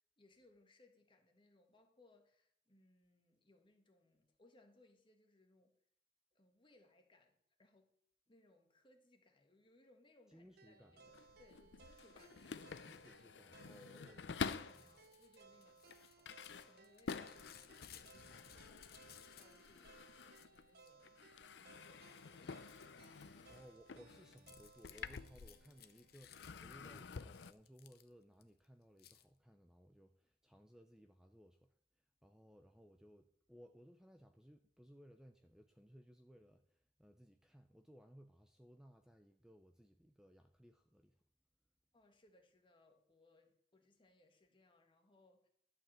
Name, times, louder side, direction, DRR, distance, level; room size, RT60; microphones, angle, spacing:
voice 1, 0.2-5.7 6.3-7.9 8.3-12.9 14.0-19.0 19.4-22.7 41.9-45.5, left 2 dB, 30° left, 3 dB, 1.7 m, -70 dB
voice 2, 10.3-11.1 12.8-15.0 23.5-41.2, equal, 5° right, 5 dB, 0.6 m, -62 dB
sound 1, 10.6-26.7, right 4 dB, 60° right, 0.7 m, -65 dB
sound 2, 11.0-14.9 15.5-20.7 21.0-25.9 26.2-27.5, left 5 dB, 80° left, 0.5 m, -49 dB
Crumpling crinkling / Tearing, 14.6-19.8 20.1-20.9 21.5-21.9 22.2-28.4 29.0-29.2, left 9 dB, 60° left, 0.8 m, -62 dB
11.5 x 5.0 x 7.7 m, 0.66 s
head